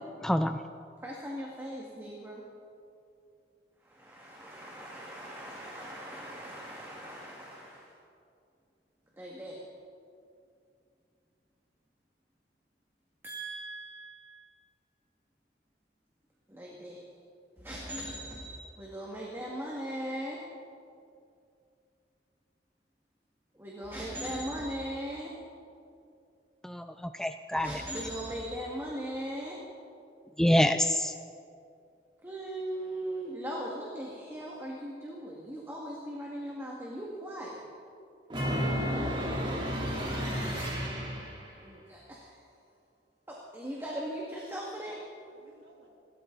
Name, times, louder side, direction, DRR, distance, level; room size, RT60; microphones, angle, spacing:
voice 1, 0.2-0.6 26.6-27.8 30.4-31.1, equal, 5° left, 8 dB, 0.4 m, -26 dB
voice 2, 1.0-2.4 3.8-7.9 9.2-9.6 13.2-14.5 16.5-17.0 17.6-20.4 23.5-25.3 27.6-29.6 32.2-37.7 41.6-42.4 43.3-45.0, right 1 dB, 15° right, -3 dB, 2.0 m, -39 dB
sound 1, 38.3-41.5, equal, 30° right, 3.4 m, -32 dB
voice 3, 39.2-40.5 45.3-45.9, right 1 dB, 80° right, -2 dB, 3.6 m, -50 dB
27.5 x 13.5 x 4.0 m, 2.4 s
head